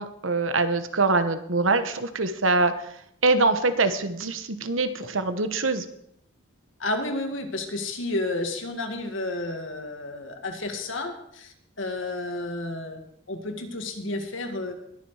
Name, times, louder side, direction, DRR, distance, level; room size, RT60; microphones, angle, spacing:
voice 1, 0.0-2.7 3.2-5.8, right 3 dB, 80° right, 10 dB, 1.1 m, -24 dB
voice 2, 6.8-13.0 13.3-14.7, left 2 dB, 75° left, 4 dB, 2.0 m, -31 dB
21.0 x 7.3 x 4.9 m, 0.73 s
head